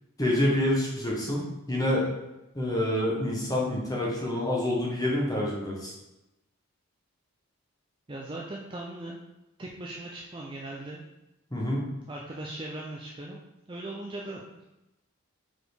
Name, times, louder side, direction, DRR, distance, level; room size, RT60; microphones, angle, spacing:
voice 1, 0.2-2.1 2.5-5.9 11.5-11.8, left 1 dB, 15° left, -4 dB, 1.3 m, -27 dB
voice 2, 8.1-9.2 9.6-11.1 12.1-13.4 13.7-14.4, right 2 dB, 20° right, -2 dB, 0.5 m, -39 dB
4.8 x 4.3 x 5.1 m, 0.95 s
head